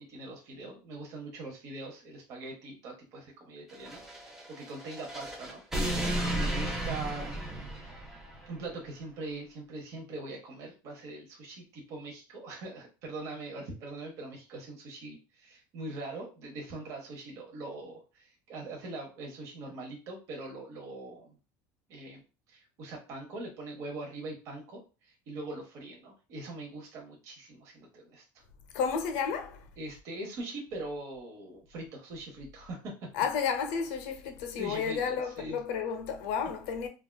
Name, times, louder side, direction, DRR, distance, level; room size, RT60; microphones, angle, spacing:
voice 1, 0.0-6.0 6.3-7.4 8.5-21.4 21.9-22.2 22.5-28.2 29.8-33.1 34.6-35.6, right 2 dB, 45° right, 0.8 m, -42 dB
sound 1, 3.7-8.5, right 1 dB, 5° right, 0.6 m, -34 dB
voice 2, 28.7-29.6 33.1-36.9, left 6 dB, 75° left, 0.6 m, -32 dB
3.4 x 2.3 x 2.2 m
cardioid pair, 170°, 7 cm